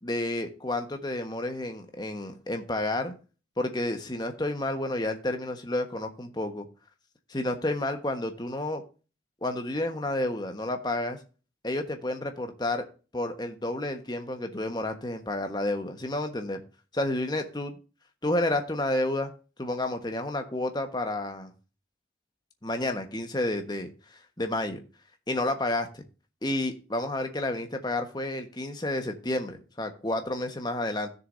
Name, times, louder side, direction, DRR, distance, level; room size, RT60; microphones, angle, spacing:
voice 1, 0.0-3.1 3.6-6.7 7.3-8.8 9.4-11.2 11.6-12.8 13.1-16.6 16.9-17.8 18.2-19.3 19.6-21.5 22.6-23.9 24.4-24.8 25.3-26.0 26.4-31.1, left 1 dB, 20° left, 6 dB, 1.3 m, -30 dB
16.0 x 6.8 x 2.6 m, 0.35 s
head